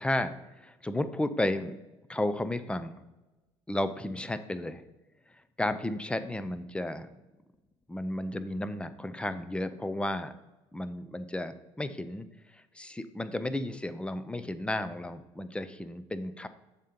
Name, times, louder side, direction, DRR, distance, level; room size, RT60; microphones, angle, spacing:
voice 1, 0.0-1.8 2.1-3.0 3.7-4.8 5.6-7.1 7.9-10.3 10.7-12.3 12.5-16.5, left 1 dB, 10° left, 11 dB, 0.5 m, -33 dB
7.1 x 2.9 x 5.2 m, 1.1 s
supercardioid pair, 70°, 13 cm